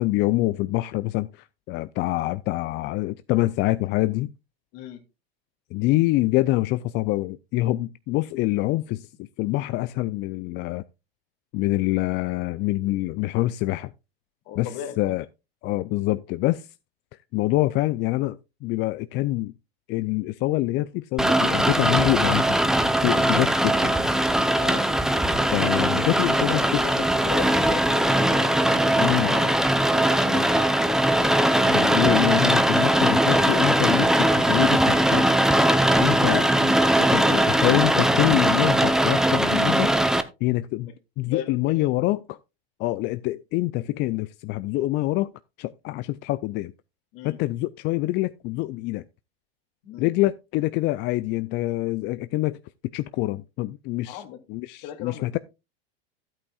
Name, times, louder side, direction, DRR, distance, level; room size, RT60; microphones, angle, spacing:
voice 1, 0.0-4.3 5.7-10.8 11.5-13.9 14.6-15.2 15.6-16.7 17.3-19.5 19.9-22.5 23.0-23.9 25.5-26.6 29.0-29.3 31.7-35.4 36.0-39.9 40.4-40.9 41.2-42.4 42.8-45.3 45.6-46.7 47.2-49.0 50.0-52.6 52.9-54.2 54.5-55.4, left 18 dB, 35° left, 0.4 m, -25 dB
voice 2, 4.7-5.0 14.5-15.1 24.5-24.9 26.1-29.6 29.9-31.0 40.8-40.9 41.2-41.7 47.1-47.4 49.8-50.1 54.0-54.4 54.8-55.4, left 10 dB, 55° left, 2.4 m, -37 dB
Rain, 21.2-40.2, right 1 dB, ahead, 0.7 m, -20 dB
13.0 x 8.8 x 2.4 m
hypercardioid pair, 105°, 31 cm